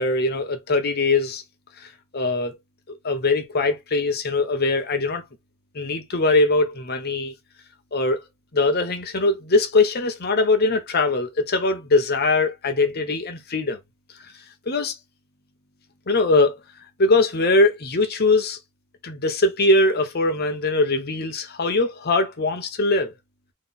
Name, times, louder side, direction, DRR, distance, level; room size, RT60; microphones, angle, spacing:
voice 1, 0.0-1.4 2.1-2.6 3.0-5.2 5.7-7.3 7.9-8.2 8.5-13.8 14.7-14.9 16.1-16.6 17.0-18.6 19.0-23.1, left 2 dB, 45° left, 0.9 m, -21 dB
3.9 x 3.2 x 3.9 m
head